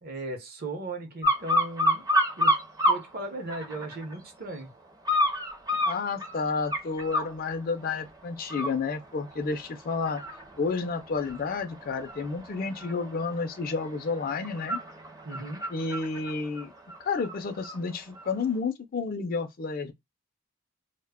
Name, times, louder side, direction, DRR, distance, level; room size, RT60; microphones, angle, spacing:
voice 1, 0.0-2.1 2.4-2.6 2.8-4.7 15.2-15.6, right 2 dB, 50° right, 0.7 m, -37 dB
sound 1, 1.2-3.0 3.5-4.1 5.0-7.3 7.8-8.1 8.4-17.8 18.2-18.3, equal, 20° right, 0.5 m, -29 dB
voice 2, 5.8-10.2 10.6-14.8 15.7-16.7 17.0-19.9, left 4 dB, 45° left, 0.4 m, -31 dB
2.1 x 2.0 x 3.4 m
head